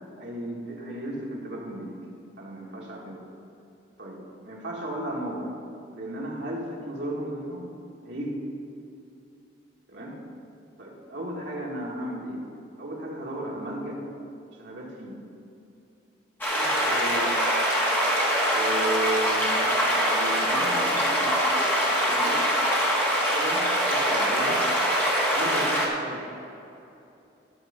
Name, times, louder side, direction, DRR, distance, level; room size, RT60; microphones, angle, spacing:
voice 1, 0.2-1.9 2.4-3.2 4.0-5.5 5.9-7.6 8.0-8.4 9.9-10.2 10.8-12.4 12.8-14.0 14.6-15.2 16.5-17.4 18.5-22.8 23.1-24.6 25.3-26.4, right 1 dB, 65° right, -3 dB, 2.0 m, -35 dB
sound 1, 16.4-25.9, equal, 10° left, 1.6 m, -23 dB
12.5 x 6.7 x 5.3 m, 2.7 s
head